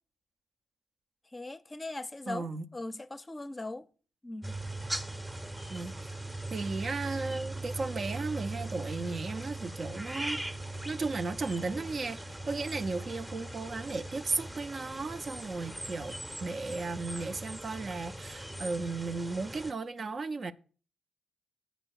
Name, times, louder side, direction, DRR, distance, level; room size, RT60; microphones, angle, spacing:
voice 1, 1.3-3.9 4.2-4.6, left 2 dB, 25° left, 0.6 m, -40 dB
voice 2, 2.3-2.6 5.7-6.1 6.5-10.4 10.8-16.1 16.4-20.5, right 3 dB, 50° right, 0.5 m, -35 dB
sound 1, 4.4-19.7, right 1 dB, 10° right, 0.7 m, -40 dB
7.9 x 5.2 x 6.3 m
supercardioid pair, 55°, 0 cm